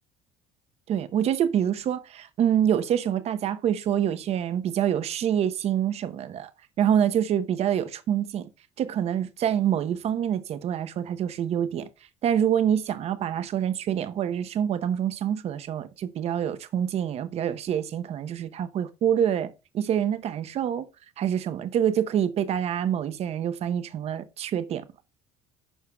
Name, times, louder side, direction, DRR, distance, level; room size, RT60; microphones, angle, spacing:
voice 1, 0.9-6.5 6.8-8.5 8.8-11.9 12.2-20.9 21.2-24.9, right 9 dB, 50° right, 0.8 m, -26 dB
11.0 x 4.5 x 2.3 m
cardioid pair, 110°, 14 cm